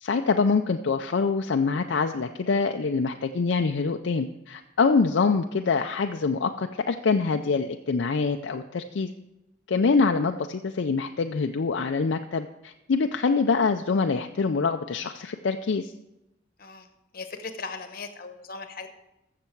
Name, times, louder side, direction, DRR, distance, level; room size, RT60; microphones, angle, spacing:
voice 1, 0.0-9.1 9.7-15.9, left 4 dB, 70° left, 5 dB, 0.4 m, -25 dB
voice 2, 17.1-18.9, left 4 dB, 50° left, 7 dB, 1.1 m, -38 dB
14.5 x 6.7 x 4.6 m, 0.90 s
head